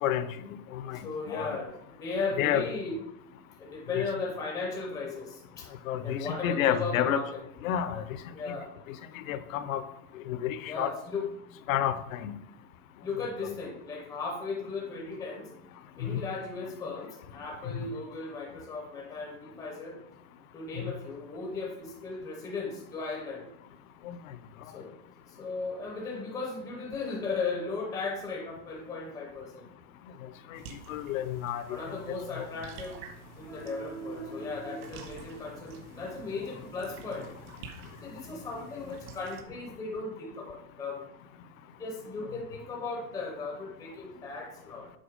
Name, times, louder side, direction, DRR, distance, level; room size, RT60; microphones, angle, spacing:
voice 1, 0.0-1.6 2.4-2.7 3.9-4.1 5.9-7.2 7.6-8.0 8.5-8.6 8.9-9.8 10.1-10.9 11.7-12.3 16.0-16.2 17.7-17.9 20.8-20.9 24.0-24.2 30.2-30.6 30.9-32.0 32.4-32.5 38.9-39.0, left 10 dB, 60° left, 12 dB, 0.7 m, -31 dB
voice 2, 0.9-2.9 3.6-5.7 6.0-7.4 8.3-8.7 10.7-11.3 13.0-15.5 16.0-20.0 20.5-23.5 24.7-25.0 25.2-29.7 31.7-33.0 33.4-37.5 38.0-41.0 41.8-44.9, left 3 dB, 10° left, 0 dB, 0.5 m, -36 dB
sound 1, 30.5-39.4, right 5 dB, 65° right, 1.5 m, -49 dB
7.7 x 4.4 x 5.1 m, 0.79 s
supercardioid pair, 175°, 45 cm